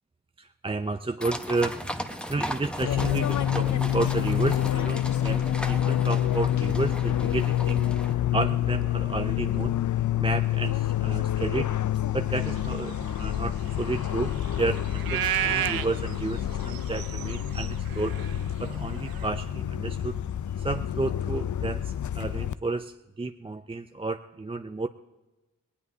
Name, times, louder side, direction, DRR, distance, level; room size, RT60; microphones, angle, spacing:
voice 1, 0.4-7.9 8.3-9.8 10.2-11.7 12.1-18.2 18.6-20.2 20.6-24.9, right 3 dB, 15° right, 7 dB, 0.5 m, -32 dB
sound 1, 1.2-8.1, equal, 5° left, 1.1 m, -37 dB
Fixed-wing aircraft airplane, 2.8-22.5, left 11 dB, 60° left, 0.5 m, -28 dB
sound 2, 12.5-19.3, right 11 dB, 90° right, 0.5 m, -33 dB
19.5 x 18.5 x 2.8 m, 1.1 s
cardioid pair, 40°, 34 cm